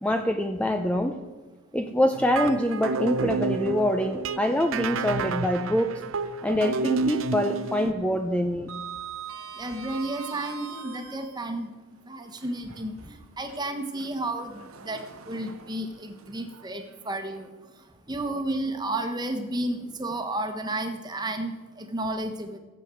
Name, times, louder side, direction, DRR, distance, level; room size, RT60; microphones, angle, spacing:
voice 1, 0.0-1.2 1.7-6.0 6.4-8.7, left 1 dB, 5° left, 6 dB, 0.5 m, -25 dB
sound 1, 2.1-7.9, right 4 dB, 70° right, 0.6 m, -30 dB
Sliding door, 2.3-3.3 3.7-3.8 5.5-6.6 6.9-7.2 7.5-11.6 12.3-17.5, right 6 dB, 90° right, 1.0 m, -44 dB
voice 2, 9.6-11.7 12.1-17.5 18.1-22.6, right 1 dB, 20° right, 6 dB, 1.2 m, -32 dB
15.5 x 7.6 x 7.7 m, 1.2 s
head